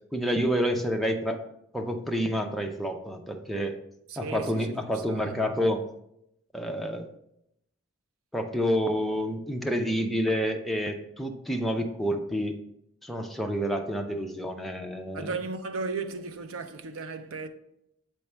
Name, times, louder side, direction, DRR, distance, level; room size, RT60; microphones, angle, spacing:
voice 1, 0.1-1.4 1.7-3.8 4.2-5.8 6.5-7.1 8.3-12.6 13.0-15.3, equal, ahead, 0.5 m, -28 dB
voice 2, 4.1-5.5 15.1-17.5, right 4 dB, 75° right, 0.5 m, -36 dB
6.9 x 4.3 x 3.3 m
head